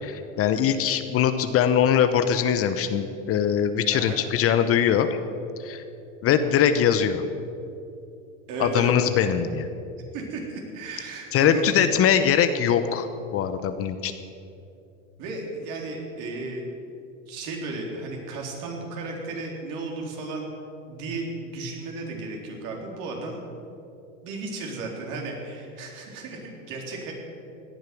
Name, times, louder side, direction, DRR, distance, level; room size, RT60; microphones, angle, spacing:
voice 1, 0.0-5.1 5.6-5.8 6.2-7.2 8.6-9.7 11.3-14.1, left 8 dB, 35° left, 10 dB, 0.9 m, -22 dB
voice 2, 8.5-9.0 10.1-11.7 15.2-16.6 17.3-20.5 20.9-23.4 24.2-27.1, right 3 dB, 55° right, 0 dB, 3.9 m, -34 dB
17.5 x 11.0 x 6.1 m, 2.7 s
hypercardioid pair, 95°, 39 cm